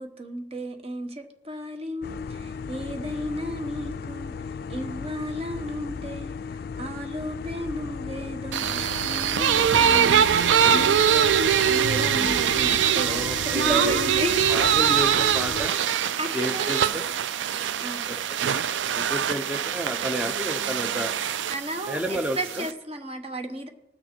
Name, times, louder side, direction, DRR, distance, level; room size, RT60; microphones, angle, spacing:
voice 1, 0.0-4.3 4.7-14.4 16.2-16.8 17.8-18.1 21.5-23.7, right 1 dB, 35° right, 1.1 m, -34 dB
sound 1, 2.0-15.7, left 5 dB, 55° left, 0.3 m, -35 dB
sound 2, 8.5-22.7, right 8 dB, 90° right, 0.4 m, -23 dB
voice 2, 13.0-14.0 14.5-15.7 16.3-17.0 18.1-18.2 18.9-21.1 21.9-22.6, equal, 5° right, 0.6 m, -31 dB
19.0 x 6.4 x 4.5 m
head